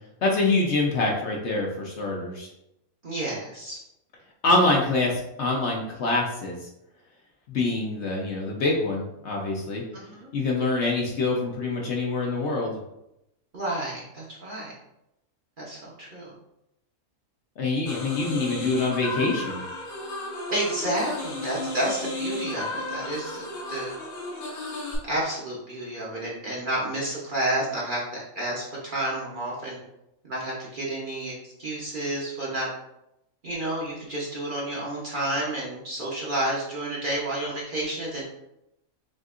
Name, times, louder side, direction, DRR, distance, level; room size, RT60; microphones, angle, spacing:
voice 1, 0.2-2.5 4.4-6.6 7.5-9.8 10.3-12.8 17.6-19.6, left 2 dB, 55° left, -1 dB, 0.9 m, -25 dB
voice 2, 3.0-3.8 9.9-10.3 13.5-14.7 15.6-16.3 20.5-23.9 25.0-29.8 30.2-32.7 33.4-38.2, right 1 dB, 40° right, -5 dB, 0.9 m, -30 dB
sound 1, 17.8-25.0, left 2 dB, 75° left, 1.6 m, -33 dB
6.3 x 2.5 x 2.5 m, 0.85 s
omnidirectional pair, 1.5 m